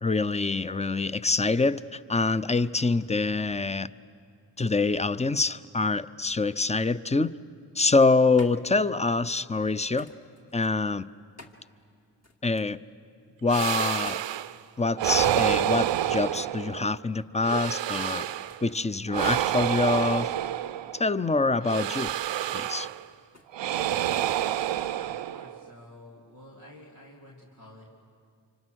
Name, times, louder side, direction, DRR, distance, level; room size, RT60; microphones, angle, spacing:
voice 1, 0.0-3.9 4.6-7.3 7.7-10.1 10.5-11.1 12.4-12.8 13.4-14.2 14.8-18.3 18.6-20.3 20.9-22.1 22.5-22.9, left 3 dB, 15° left, 15 dB, 0.6 m, -25 dB
sound 1, 8.4-24.4, left 2 dB, 35° left, 2.0 m, -55 dB
sound 2, 13.5-14.6 15.0-17.0 17.4-18.6 19.1-21.1 21.6-23.1 23.5-25.7, right 12 dB, 75° right, 0.6 m, -28 dB
voice 2, 24.8-27.8, left 1 dB, 85° left, -6 dB, 3.4 m, -50 dB
26.0 x 25.0 x 6.4 m, 2.3 s
supercardioid pair, 45°, 45 cm